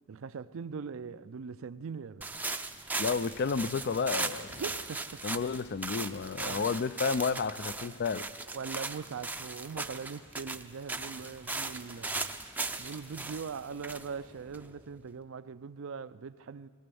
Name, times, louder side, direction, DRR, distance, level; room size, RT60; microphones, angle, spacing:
voice 1, 0.1-2.3 4.6-5.3 6.4-6.7 8.5-12.3 12.8-16.7, right 5 dB, 65° right, 0.4 m, -41 dB
sound 1, 2.2-15.0, right 3 dB, 10° right, 0.5 m, -38 dB
voice 2, 3.0-4.6 5.2-8.2, left 5 dB, 50° left, 0.4 m, -31 dB
20.0 x 19.5 x 7.0 m
head